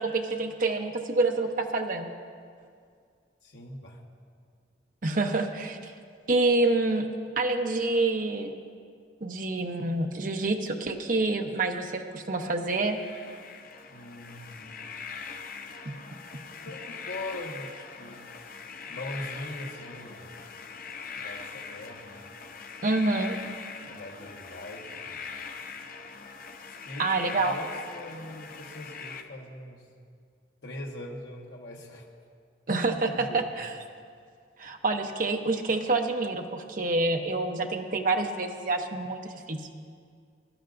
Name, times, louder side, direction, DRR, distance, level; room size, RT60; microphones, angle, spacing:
voice 1, 0.0-2.1 5.0-5.9 6.3-7.1 7.4-8.5 9.2-13.0 15.8-15.9 22.8-23.4 27.0-27.6 32.7-33.8 34.6-39.6, right 2 dB, 45° right, 3 dB, 0.8 m, -27 dB
voice 2, 3.4-4.0 13.9-14.9 16.6-18.3 18.9-20.5 21.2-22.2 23.9-25.2 26.8-29.8 30.6-32.0 33.1-33.4, left 1 dB, 75° left, -1 dB, 1.3 m, -41 dB
sound 1, 12.6-29.2, left 5 dB, 50° left, 0.7 m, -42 dB
22.5 x 11.5 x 2.6 m, 2.1 s
head